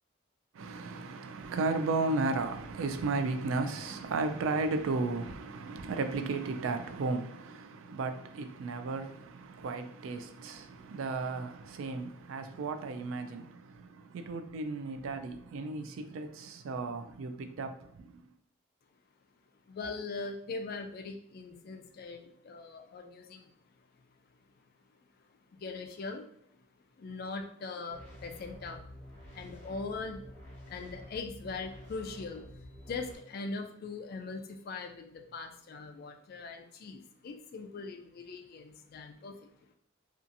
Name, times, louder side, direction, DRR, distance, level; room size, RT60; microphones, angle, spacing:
voice 1, 0.5-18.3, right 3 dB, 75° right, 0.3 m, -34 dB
voice 2, 19.7-23.5 25.5-26.3 27.0-28.8 29.3-30.2 30.7-39.5, left 3 dB, 50° left, 0.3 m, -41 dB
sound 1, 27.9-33.1, left 1 dB, 30° left, 0.9 m, -49 dB
2.6 x 2.4 x 2.5 m
head